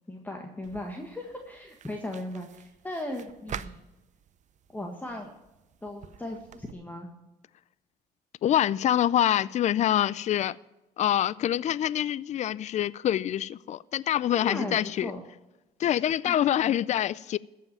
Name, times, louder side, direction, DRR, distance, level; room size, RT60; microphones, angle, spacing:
voice 1, 0.1-3.8 4.7-5.3 5.8-7.1 14.3-15.2 16.2-16.4, left 1 dB, 10° left, 1.6 m, -37 dB
sound 1, 0.6-6.7, right 8 dB, 45° right, 0.6 m, -46 dB
voice 2, 8.4-10.6 11.0-15.1 15.8-17.4, left 11 dB, 45° left, 0.4 m, -25 dB
14.5 x 5.7 x 8.8 m
cardioid pair, 110°, 17 cm